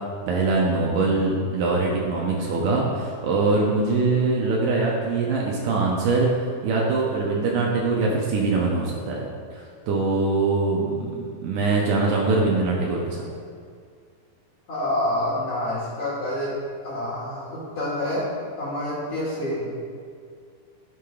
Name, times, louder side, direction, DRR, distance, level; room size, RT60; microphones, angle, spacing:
voice 1, 0.3-6.3 6.6-9.3 9.5-11.2 11.4-13.3, right 3 dB, 90° right, -2 dB, 1.8 m, -23 dB
voice 2, 14.7-16.5 16.8-18.2 18.6-19.7, left 1 dB, 60° left, -9 dB, 1.6 m, -27 dB
12.5 x 4.8 x 2.3 m, 2.2 s
omnidirectional pair, 4.5 m